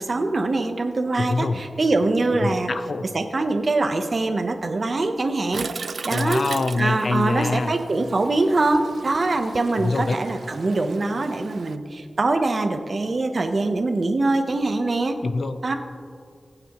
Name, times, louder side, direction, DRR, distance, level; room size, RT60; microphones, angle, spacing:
voice 1, 0.0-2.7 3.0-6.5 6.8-15.2 15.6-15.7, right 2 dB, 50° right, 7 dB, 0.9 m, -23 dB
voice 2, 1.2-1.6 2.4-3.0 6.1-7.7 9.8-10.2 15.2-15.6, left 3 dB, 60° left, 10 dB, 0.6 m, -24 dB
Toilet flush, 5.5-11.8, right 4 dB, 75° right, 0.3 m, -37 dB
20.5 x 8.9 x 3.0 m, 2.2 s
wide cardioid pair, 100°, 0 cm